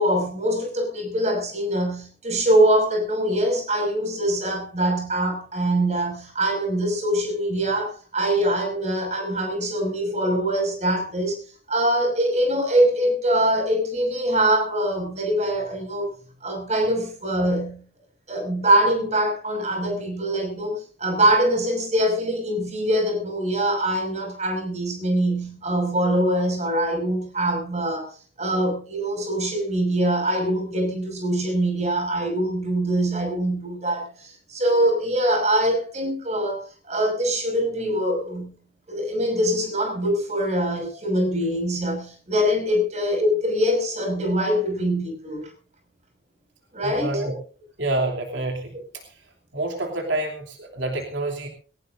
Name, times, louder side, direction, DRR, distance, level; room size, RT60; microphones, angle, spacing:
voice 1, 0.0-11.4 11.7-16.1 16.4-17.8 18.3-28.1 28.4-38.5 38.9-45.5 46.7-47.1, right 1 dB, 35° right, 5.8 m, -23 dB
voice 2, 46.8-47.4 47.8-49.0 49.5-51.5, right 2 dB, 80° right, 3.1 m, -27 dB
21.5 x 18.5 x 2.6 m
head